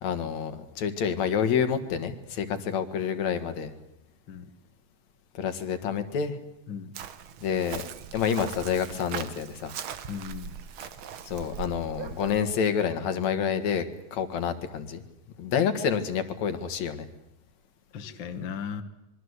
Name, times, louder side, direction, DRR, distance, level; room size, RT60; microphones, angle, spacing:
voice 1, 0.0-3.7 5.4-6.4 7.4-7.9 8.1-9.7 11.2-15.0 15.4-17.1, left 7 dB, 70° left, 10 dB, 2.9 m, -28 dB
Chirp tweet, 6.9-12.4, right 8 dB, 60° right, 1.6 m, -40 dB
voice 2, 10.1-10.6 17.9-18.8, left 7 dB, 45° left, 8 dB, 2.1 m, -36 dB
25.5 x 23.0 x 8.2 m, 0.86 s
omnidirectional pair, 3.3 m